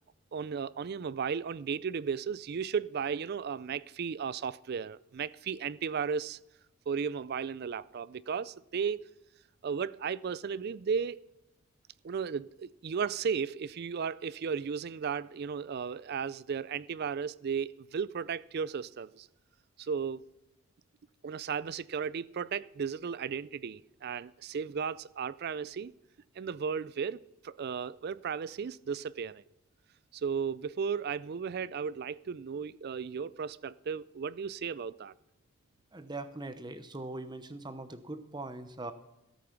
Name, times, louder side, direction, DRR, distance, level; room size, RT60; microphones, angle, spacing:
voice 1, 0.3-6.4 6.9-9.0 9.6-11.2 12.0-19.3 19.8-20.2 21.2-25.9 26.4-29.4 30.1-35.1, right 6 dB, 50° right, 0.4 m, -35 dB
voice 2, 35.9-38.9, right 2 dB, 20° right, 0.8 m, -41 dB
14.0 x 8.3 x 5.9 m
head